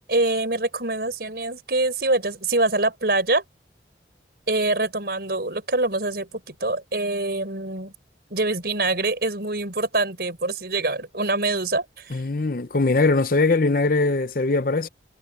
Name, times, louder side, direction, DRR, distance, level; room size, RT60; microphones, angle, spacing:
voice 1, 0.1-3.4 4.5-7.9 8.3-12.2, right 2 dB, 60° right, 5.3 m, -24 dB
voice 2, 12.1-14.9, left 3 dB, 50° left, 0.7 m, -21 dB
head